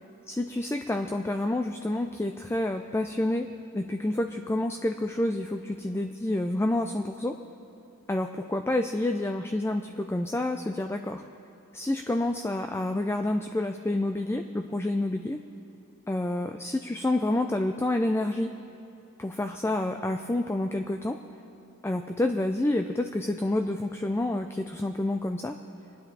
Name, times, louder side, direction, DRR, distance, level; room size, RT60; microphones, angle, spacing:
voice 1, 0.3-7.4 8.1-11.2 11.7-15.4 16.1-18.5 19.2-21.2 21.8-25.6, left 1 dB, 10° left, 5 dB, 0.4 m, -28 dB
25.0 x 10.0 x 4.1 m, 2.7 s
head